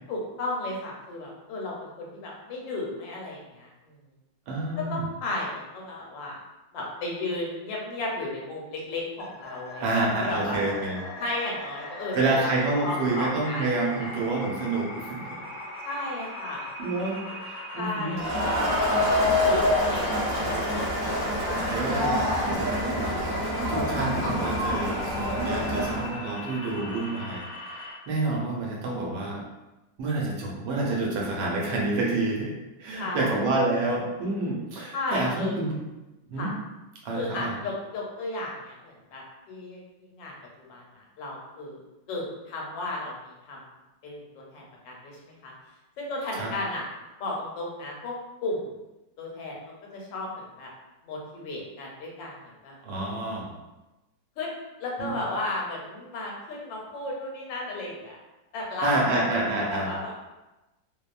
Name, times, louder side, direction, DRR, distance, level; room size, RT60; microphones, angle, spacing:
voice 1, 0.1-3.9 4.8-6.4 6.7-9.9 10.2-10.6 11.2-12.5 12.8-13.7 14.0-14.2 15.8-16.7 17.7-20.9 21.2-22.1 33.0-33.4 34.9-35.6 36.4-36.5 37.1-40.3 40.7-43.6 44.0-45.5 46.0-46.9 47.2-48.1 48.4-48.6 49.2-49.6 49.9-50.7 51.0-52.7 54.4-54.5 54.8-58.2 58.5-60.1, left 2 dB, 85° left, -2 dB, 1.3 m, -34 dB
voice 2, 4.5-5.0 9.8-11.0 12.1-15.4 16.8-17.2 17.4-18.1 21.6-22.7 23.7-27.4 27.7-29.4 30.0-32.5 32.8-35.7 36.3-36.5 37.0-37.5 46.3-46.5 52.8-53.5 55.0-55.2 58.8-59.9, right 2 dB, 75° right, -2 dB, 1.2 m, -28 dB
sound 1, 9.2-27.9, left 1 dB, 55° left, 0.5 m, -39 dB
Crowd, 18.2-26.1, left 1 dB, 45° right, 0.5 m, -26 dB
3.0 x 2.1 x 2.4 m, 1.0 s
omnidirectional pair, 1.9 m